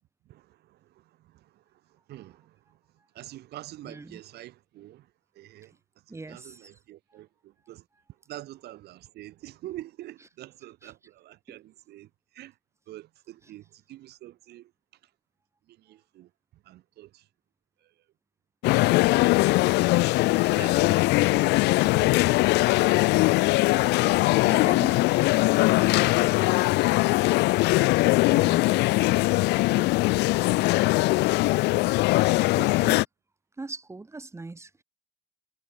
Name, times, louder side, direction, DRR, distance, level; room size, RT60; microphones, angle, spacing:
voice 1, 0.3-1.6 1.9-2.8 3.1-5.1 5.3-5.7 6.1-7.8 8.3-12.1 12.3-12.5 12.9-14.7 15.7-16.3 16.6-17.3 17.8-17.9 20.5-21.1 21.7-22.4 24.1-25.3 26.4-26.8 27.7-29.1 30.4-30.5 31.4-31.7, right 15 dB, 75° right, 2.4 m, -46 dB
voice 2, 3.8-4.2 6.1-6.7 10.8-10.9 11.5-11.6 24.4-25.0 28.3-28.7 32.6-33.0 33.6-34.8, right 3 dB, 15° right, 3.5 m, -40 dB
sound 1, 18.6-33.0, left 21 dB, 85° left, 0.8 m, -21 dB
cardioid pair, 110°, 17 cm